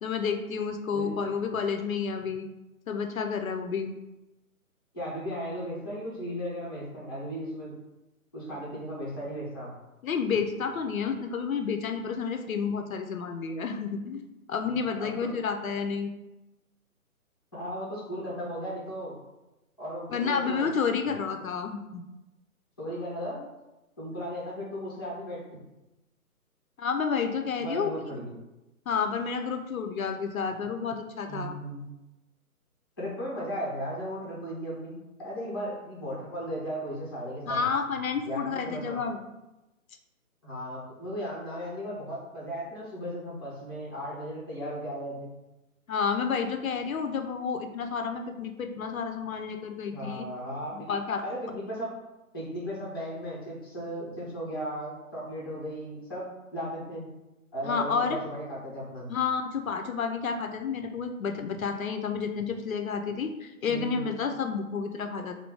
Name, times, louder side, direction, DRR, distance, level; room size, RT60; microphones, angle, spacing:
voice 1, 0.0-2.5 2.9-3.9 10.0-14.2 14.5-16.1 20.1-22.0 26.8-27.9 28.9-31.6 37.5-39.2 45.9-50.3 50.7-51.2 57.6-58.2 59.1-65.4, left 6 dB, 70° left, 5 dB, 0.5 m, -30 dB
voice 2, 0.9-1.2 4.9-7.8 8.3-9.7 15.0-15.3 17.5-19.2 19.8-20.7 22.8-23.4 24.0-25.6 27.6-28.3 31.3-31.9 33.0-37.7 38.2-39.0 40.4-45.3 49.9-50.9 51.2-51.9 52.3-56.3 56.5-57.1 57.5-59.1 63.7-64.1, equal, 15° left, -7 dB, 0.5 m, -36 dB
3.1 x 2.3 x 3.4 m, 0.99 s
figure-of-eight pair, 150°, 44 cm